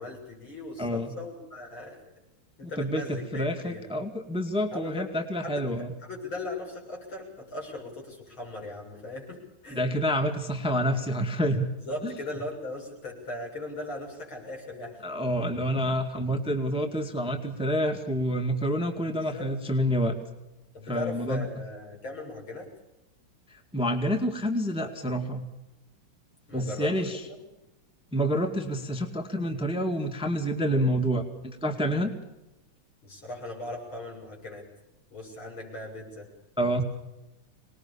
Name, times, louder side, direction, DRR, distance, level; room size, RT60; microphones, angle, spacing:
voice 1, 0.0-2.0 2.6-3.8 4.7-5.1 5.4-9.9 11.8-15.0 19.0-19.5 20.7-22.7 26.5-27.4 33.0-34.6 35.1-36.3, left 2 dB, 65° left, 0 dB, 8.0 m, -38 dB
voice 2, 0.8-1.1 2.8-5.9 9.7-11.8 12.0-12.1 15.0-20.2 20.9-21.5 23.5-25.5 26.5-27.2 28.1-32.1 36.6-36.8, equal, 5° right, 6 dB, 1.9 m, -28 dB
25.5 x 20.5 x 7.1 m, 0.96 s
omnidirectional pair, 2.4 m